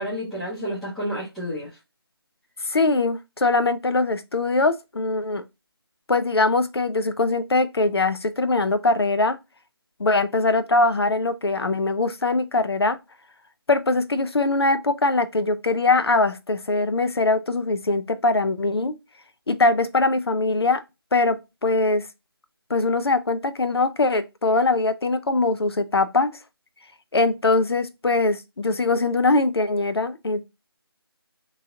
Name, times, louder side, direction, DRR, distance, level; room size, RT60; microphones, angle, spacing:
voice 1, 0.0-1.7, equal, ahead, 0.6 m, -30 dB
voice 2, 2.6-5.4 6.1-9.4 10.0-13.0 13.7-18.9 19.5-20.8 21.1-22.1 22.7-26.3 27.1-30.4, left 3 dB, 80° left, 0.6 m, -22 dB
3.0 x 2.8 x 3.6 m
figure-of-eight pair, 170°, 13 cm